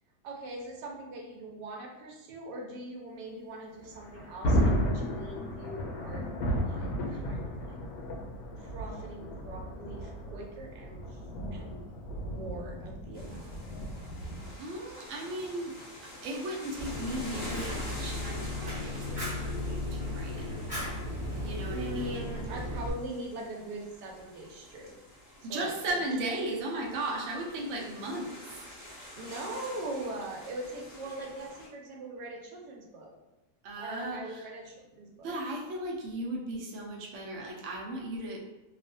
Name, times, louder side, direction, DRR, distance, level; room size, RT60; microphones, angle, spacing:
voice 1, 0.2-6.3 6.6-7.8 8.6-11.2 11.5-11.8 12.1-13.5 21.7-25.0 25.5-25.7 29.1-33.1 33.8-35.3, right 2 dB, 85° right, 0 dB, 1.2 m, -41 dB
Thunder, 3.8-14.6, equal, 85° left, 1.2 m, -33 dB
sound 1, 13.1-31.7, left 1 dB, 30° left, 0.9 m, -48 dB
voice 2, 14.6-15.8 16.0-20.5 21.4-22.3 25.4-28.7 33.6-34.5 35.2-38.4, right 1 dB, 65° right, -1 dB, 0.7 m, -36 dB
Fire, 16.8-22.9, left 1 dB, 5° right, 0.8 m, -35 dB
3.0 x 2.0 x 2.6 m, 1.0 s
omnidirectional pair, 1.8 m